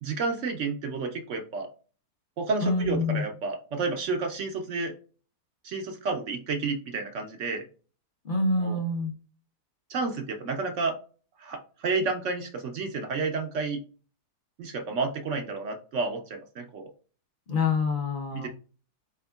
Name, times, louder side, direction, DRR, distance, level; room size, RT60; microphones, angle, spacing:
voice 1, 0.0-1.7 2.4-4.9 5.6-7.7 8.6-8.8 9.9-11.0 11.4-13.8 14.6-16.9 18.3-18.5, right 4 dB, 65° right, 4 dB, 0.7 m, -30 dB
voice 2, 2.6-3.2 8.2-9.1 17.5-18.5, left 3 dB, 45° left, 3 dB, 0.7 m, -26 dB
4.3 x 3.5 x 2.2 m, 0.37 s
omnidirectional pair, 1.7 m